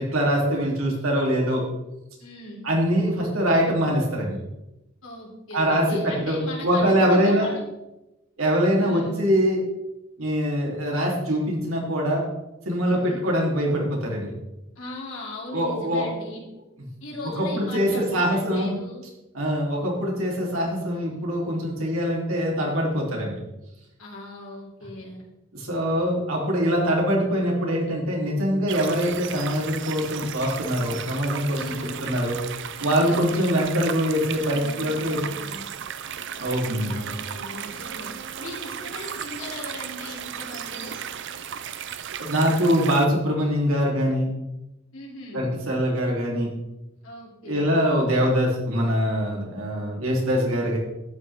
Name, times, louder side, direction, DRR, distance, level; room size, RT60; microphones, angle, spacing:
voice 1, 0.0-1.6 2.6-4.4 5.5-7.5 8.4-9.6 10.2-12.3 12.6-14.3 15.5-16.1 17.3-18.8 19.3-23.4 25.5-31.7 32.0-32.4 32.8-35.2 36.3-37.0 42.2-44.3 45.3-46.5 47.4-50.8, equal, 85° right, -2 dB, 3.3 m, -23 dB
voice 2, 2.2-2.7 5.0-7.6 8.8-9.2 12.8-13.2 14.8-16.5 17.0-19.0 24.0-25.3 31.6-32.1 32.8-33.3 34.5-35.7 36.9-41.0 44.9-45.5 47.0-47.8, left 1 dB, 75° left, -2 dB, 3.4 m, -39 dB
sound 1, 28.7-43.1, right 9 dB, 60° right, 0.6 m, -35 dB
12.0 x 9.3 x 3.6 m, 0.96 s
head